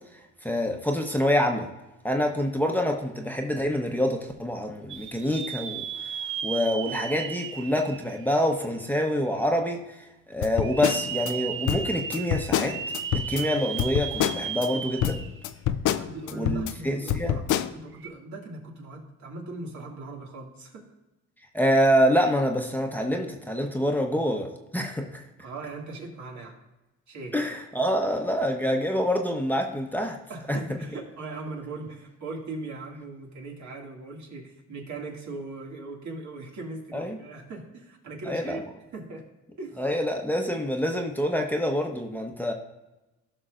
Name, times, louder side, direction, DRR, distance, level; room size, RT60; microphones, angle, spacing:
voice 1, 0.4-1.7 2.0-5.9 6.4-12.8 13.1-15.2 16.3-17.4 21.5-25.2 27.3-30.2 30.5-30.6 36.9-37.2 38.3-38.6 39.8-42.5, equal, 5° left, 2 dB, 1.0 m, -26 dB
sound 1, 4.9-8.9 9.4-9.5 10.5-15.5 15.9-16.0 17.9-18.1, right 7 dB, 45° right, 0.6 m, -35 dB
sound 2, 10.4-11.3 11.7-13.4 13.8-14.7 15.0-16.7 17.1-17.7, left 10 dB, 80° left, 0.6 m, -27 dB
voice 2, 15.9-20.8 25.4-26.6 27.1-27.3 30.3-38.6 38.9-39.2 39.6-39.8, right 3 dB, 70° right, -1 dB, 2.3 m, -39 dB
15.5 x 5.9 x 2.6 m, 1.0 s
cardioid pair, 90°, 30 cm